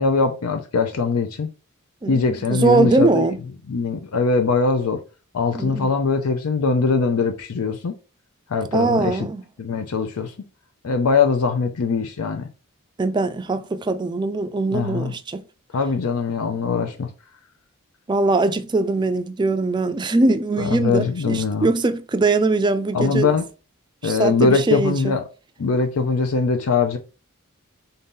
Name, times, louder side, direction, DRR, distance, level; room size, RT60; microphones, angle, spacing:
voice 1, 0.0-1.5 2.1-3.3 3.7-5.0 5.3-7.9 8.5-9.3 9.6-10.3 10.8-12.5 14.7-15.1 15.7-17.1 20.6-21.7 22.9-23.5 24.0-25.2 25.6-27.0, left 4 dB, 80° left, 0.5 m, -21 dB
voice 2, 2.0-3.4 5.5-5.9 8.7-9.4 13.0-15.4 18.1-23.3 24.0-25.2, right 3 dB, 20° right, 0.3 m, -21 dB
3.9 x 2.7 x 3.6 m
head